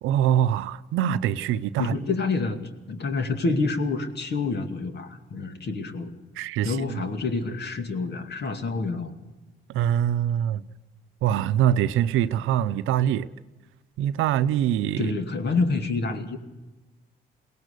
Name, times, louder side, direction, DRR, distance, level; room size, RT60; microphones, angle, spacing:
voice 1, 0.0-1.9 6.4-6.7 9.7-10.6 11.2-13.3 14.0-15.1, right 10 dB, 90° right, 0.7 m, -23 dB
voice 2, 1.8-2.6 2.9-6.1 6.6-9.1 15.0-16.4, left 3 dB, 55° left, 2.4 m, -27 dB
22.5 x 18.0 x 6.7 m
cardioid pair, 90°, 20 cm